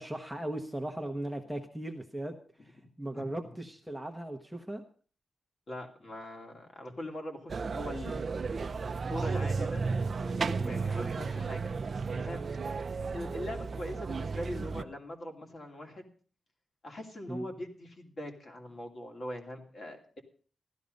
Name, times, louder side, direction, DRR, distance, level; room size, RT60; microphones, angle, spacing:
voice 1, 0.0-2.4 2.6-4.8 10.6-10.8 17.3-17.5, right 1 dB, ahead, 3 dB, 1.1 m, -38 dB
voice 2, 3.1-3.5 5.7-8.3 8.8-9.8 10.2-12.4 13.1-16.1 16.8-20.2, left 1 dB, 40° left, 2 dB, 2.7 m, -42 dB
sound 1, 7.5-14.8, right 4 dB, 40° right, 0.6 m, -33 dB
15.0 x 12.5 x 5.3 m, 0.42 s
wide cardioid pair, 165°, 0 cm